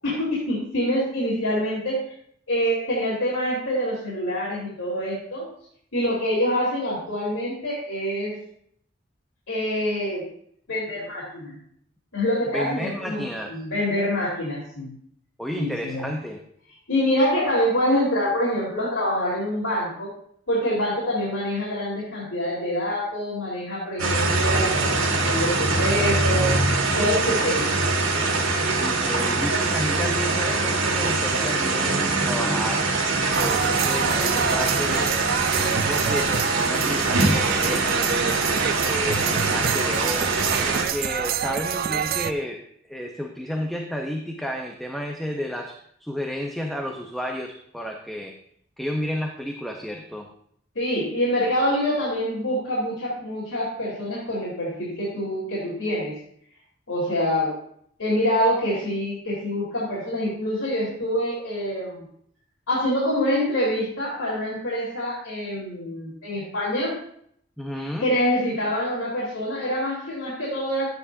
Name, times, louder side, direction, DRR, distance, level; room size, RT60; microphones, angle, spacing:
voice 1, 0.0-2.1 2.5-5.5 5.9-8.3 9.5-10.2 10.7-11.6 12.1-14.9 15.6-16.1 16.9-20.1 20.5-26.6 27.0-27.7 50.8-56.1 56.9-57.6 58.0-62.0 62.7-67.0 68.0-70.9, equal, 90° left, -7 dB, 3.5 m, -25 dB
voice 2, 12.5-13.5 15.4-16.4 28.8-32.9 33.2-35.2 35.5-40.3 40.7-48.3 48.8-50.3 67.6-68.1, equal, ahead, 1 dB, 0.8 m, -32 dB
sound 1, 24.0-40.8, right 3 dB, 75° right, 2.0 m, -23 dB
sound 2, 33.3-42.3, right 8 dB, 50° right, 0.4 m, -27 dB
13.0 x 9.4 x 2.7 m, 0.66 s
head